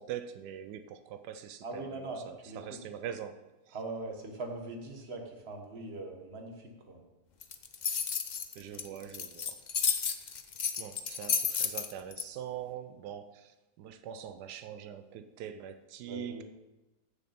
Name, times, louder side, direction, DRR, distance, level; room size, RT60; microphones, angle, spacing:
voice 1, 0.0-3.4 3.7-3.8 8.6-9.6 10.8-16.4, right 9 dB, 85° right, 10 dB, 1.2 m, -43 dB
voice 2, 1.6-2.2 2.4-2.8 3.7-7.0 16.1-16.4, right 2 dB, 40° right, 3 dB, 1.7 m, -41 dB
sound 1, 7.4-12.2, left 6 dB, 60° left, 0.4 m, -32 dB
15.0 x 6.8 x 4.3 m, 1.1 s
omnidirectional pair, 1.7 m